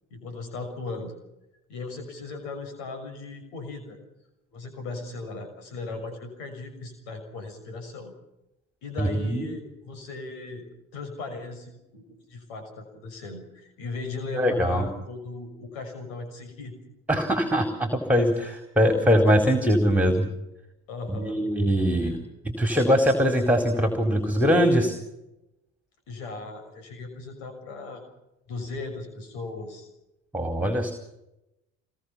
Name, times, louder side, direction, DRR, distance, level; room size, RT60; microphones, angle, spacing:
voice 1, 0.1-1.1 1.7-4.0 4.5-8.1 8.8-10.7 10.9-12.0 12.3-16.8 18.8-19.0 19.3-19.4 20.9-21.4 22.0-22.2 26.1-28.0 28.5-29.9, left 3 dB, 75° left, 6 dB, 6.4 m, -37 dB
voice 2, 9.0-9.5 14.3-14.9 17.1-20.3 21.1-22.2 22.4-24.9 30.3-30.9, equal, 5° right, 5 dB, 4.4 m, -22 dB
28.0 x 22.0 x 5.8 m, 0.91 s
hypercardioid pair, 70°, 36 cm